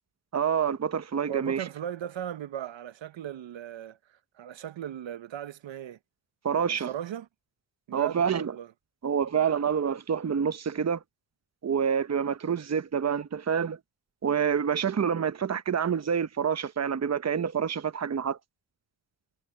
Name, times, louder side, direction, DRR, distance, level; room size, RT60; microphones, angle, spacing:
voice 1, 0.3-1.6 6.4-6.9 7.9-8.5 9.0-11.0 11.6-13.8 14.2-18.4, right 7 dB, 35° right, 1.0 m, -27 dB
voice 2, 1.3-6.0 6.6-7.3 7.9-8.7, right 10 dB, 70° right, 1.0 m, -37 dB
cardioid pair, 60°, 47 cm